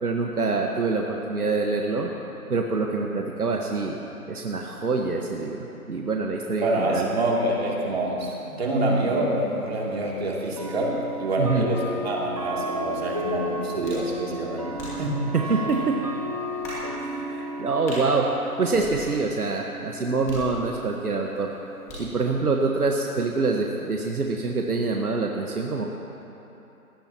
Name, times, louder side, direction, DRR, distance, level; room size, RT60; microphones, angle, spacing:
voice 1, 0.0-2.1 2.5-4.0 4.3-7.1 11.4-11.6 15.3-16.0 16.9-18.3 18.6-21.5 22.0-25.9, right 3 dB, 75° right, 1 dB, 1.5 m, -25 dB
voice 2, 6.6-15.3, right 1 dB, 40° right, -3 dB, 2.9 m, -26 dB
sound 1, 8.3-8.4 9.5-9.6 10.6-23.8, equal, 25° right, 0.8 m, -35 dB
sound 2, 13.8-14.1 14.8-15.1 15.7-15.8 16.6-16.9 17.9-18.0 18.7-19.4 20.3-20.9 21.9-22.2, equal, 5° left, 1.8 m, -39 dB
21.5 x 17.5 x 2.9 m, 3.0 s
figure-of-eight pair, 165°, 45 cm